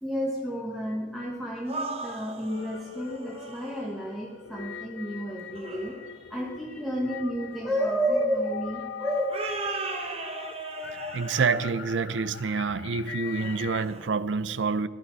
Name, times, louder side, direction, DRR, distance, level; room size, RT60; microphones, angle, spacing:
voice 1, 0.0-9.4, equal, ahead, 1.2 m, -31 dB
sound 1, 1.6-4.0 5.5-6.1 9.3-11.8 13.3-14.1, right 3 dB, 35° right, 1.2 m, -37 dB
sound 2, 2.4-13.9, left 7 dB, 85° left, 0.4 m, -42 dB
voice 2, 11.1-14.9, right 5 dB, 80° right, 0.6 m, -27 dB
14.5 x 11.5 x 4.7 m
head